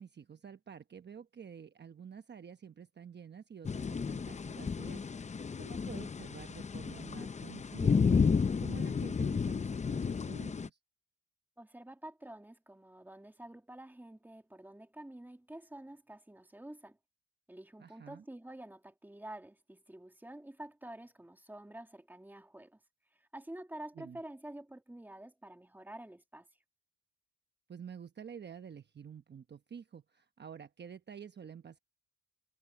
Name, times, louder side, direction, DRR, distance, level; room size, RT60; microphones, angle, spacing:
voice 1, 0.0-10.8 17.8-18.2 23.9-24.2 27.7-31.8, right 7 dB, 35° right, 1.0 m, -49 dB
sound 1, 3.6-10.7, left 5 dB, 25° left, 0.6 m, -32 dB
voice 2, 11.6-17.0 17.5-22.8 23.3-26.5, right 1 dB, 5° right, 2.0 m, -49 dB
cardioid pair, 90°, 30 cm